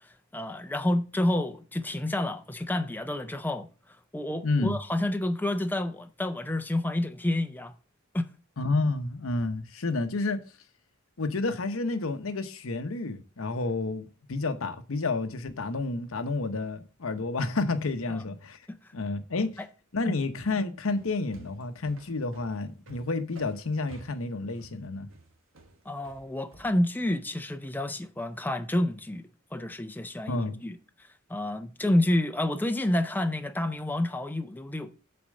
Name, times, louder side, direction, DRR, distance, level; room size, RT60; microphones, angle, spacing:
voice 1, 0.3-3.7 4.1-7.7 8.1-8.3 18.1-18.2 18.7-18.8 25.9-29.2 29.5-30.8 31.3-34.9, left 1 dB, 10° left, 0.6 m, -29 dB
voice 2, 4.4-4.8 8.6-10.4 11.2-18.6 18.9-19.5 19.9-25.1 30.3-30.6, left 3 dB, 90° left, 0.9 m, -30 dB
sound 1, 21.0-27.2, right 2 dB, 70° right, 1.4 m, -52 dB
6.9 x 4.4 x 6.4 m
head